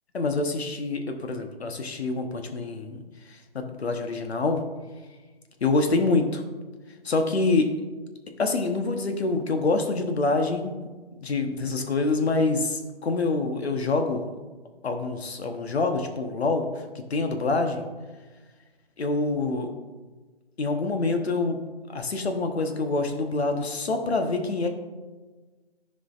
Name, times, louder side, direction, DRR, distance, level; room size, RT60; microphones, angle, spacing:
voice 1, 0.1-3.0 3.3-4.6 5.6-6.4 7.0-7.7 8.4-10.9 11.2-14.3 14.8-16.7 16.9-17.9 19.0-19.7 20.6-21.6 21.9-24.7, left 3 dB, 75° left, 5 dB, 1.1 m, -26 dB
13.0 x 5.0 x 2.5 m, 1.3 s
hypercardioid pair, 155°, 32 cm